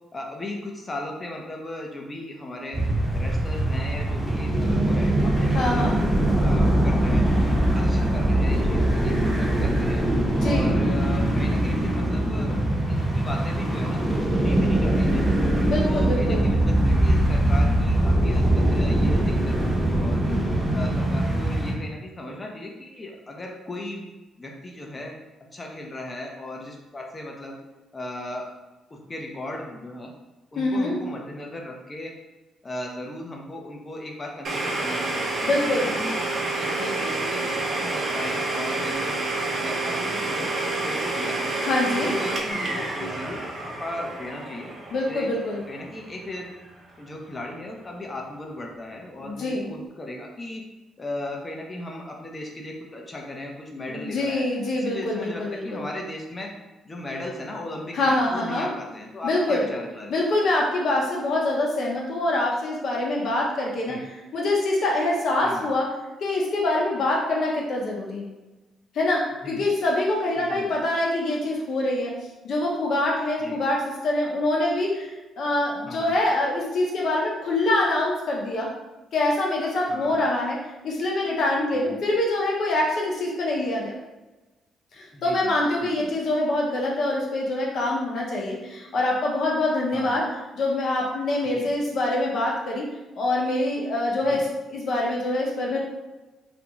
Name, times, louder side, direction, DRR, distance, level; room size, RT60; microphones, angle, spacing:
voice 1, 0.1-2.8 3.1-6.1 6.4-7.2 7.7-10.1 10.4-12.6 12.9-15.3 15.8-20.4 20.7-24.1 24.4-25.2 25.5-27.6 27.9-28.5 28.9-30.1 30.5-32.1 32.6-41.5 41.9-44.8 45.1-45.3 45.7-46.5 47.0-50.6 51.0-54.4 54.8-56.5 56.8-60.1 63.9-64.0 65.4-65.7 69.4-69.6 70.4-70.7 73.4-73.6 75.9-76.1 79.9-80.2 81.7-82.0 85.1-85.6 85.8-86.1 89.9-90.2 91.5-91.7 94.2-94.4, left 1 dB, 25° left, 0 dB, 0.5 m, -37 dB
sound 1, 2.7-21.7, right 1 dB, 10° right, 0.7 m, -22 dB
voice 2, 5.5-5.9 10.4-10.7 15.6-16.5 30.6-31.0 35.4-35.9 41.6-42.1 44.9-45.6 49.2-49.7 53.9-55.8 57.9-58.7 59.2-59.7 60.1-65.9 66.2-68.3 68.9-72.1 72.4-75.1 75.4-78.7 79.1-84.0 84.9-90.2 90.6-92.9 93.2-95.8, left 2 dB, 65° left, -3 dB, 0.7 m, -25 dB
Domestic sounds home sounds, 34.4-46.1, right 2 dB, 50° right, 0.6 m, -28 dB
2.5 x 2.2 x 3.0 m, 1.1 s
cardioid pair, 90°, 0 cm